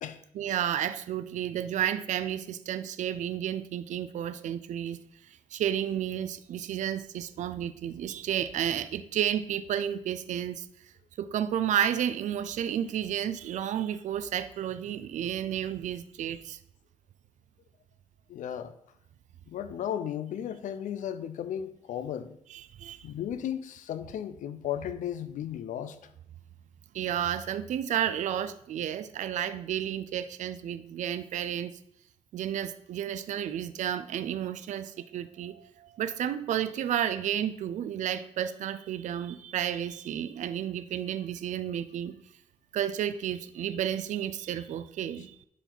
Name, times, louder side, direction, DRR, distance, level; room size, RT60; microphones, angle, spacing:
voice 1, 0.3-5.0 5.3-10.7 11.2-16.6 22.5-23.1 26.9-31.7 32.3-42.2 42.7-45.5, right 10 dB, 75° right, 0.5 m, -32 dB
voice 2, 18.3-18.7 19.5-22.4 23.0-26.0, left 10 dB, 85° left, 0.6 m, -35 dB
10.5 x 4.6 x 3.9 m
cardioid pair, 125°, 13 cm